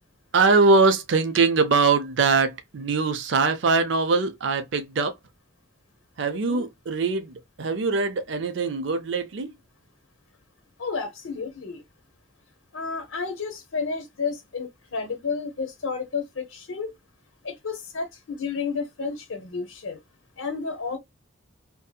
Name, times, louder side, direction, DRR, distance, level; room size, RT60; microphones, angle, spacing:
voice 1, 0.3-5.1 6.2-9.5, right 4 dB, 65° right, 0.5 m, -22 dB
voice 2, 6.3-6.6 10.8-11.8 12.7-16.9 17.4-20.0 20.4-21.0, left 5 dB, 85° left, 0.7 m, -31 dB
2.6 x 2.6 x 2.2 m
head